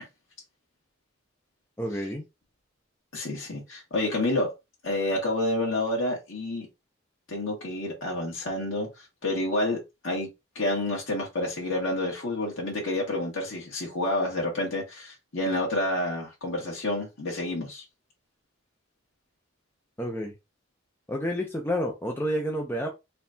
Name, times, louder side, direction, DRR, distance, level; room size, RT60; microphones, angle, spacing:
voice 1, 1.8-2.3 20.0-20.3 21.1-22.9, equal, 10° left, 0.6 m, -29 dB
voice 2, 3.1-4.5 4.8-6.7 7.3-8.9 9.2-10.3 10.5-17.8, left 1 dB, 80° left, 1.8 m, -29 dB
4.2 x 3.3 x 2.7 m
head